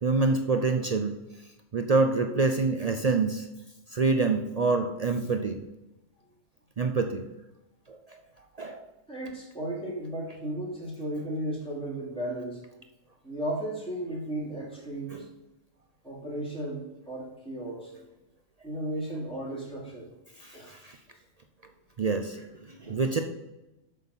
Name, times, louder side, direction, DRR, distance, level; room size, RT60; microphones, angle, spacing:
voice 1, 0.0-1.1 1.7-3.5 3.9-5.6 6.8-7.2 7.9-8.0 8.6-8.8 15.1-15.2 20.4-21.0 22.0-23.2, right 4 dB, 60° right, 6 dB, 0.4 m, -26 dB
voice 2, 9.1-12.6 13.2-15.2 16.0-17.9 18.6-20.1 20.5-20.7 22.8-22.9, right 1 dB, 5° left, -6 dB, 2.8 m, -35 dB
7.8 x 6.6 x 5.5 m, 0.97 s
omnidirectional pair, 1.5 m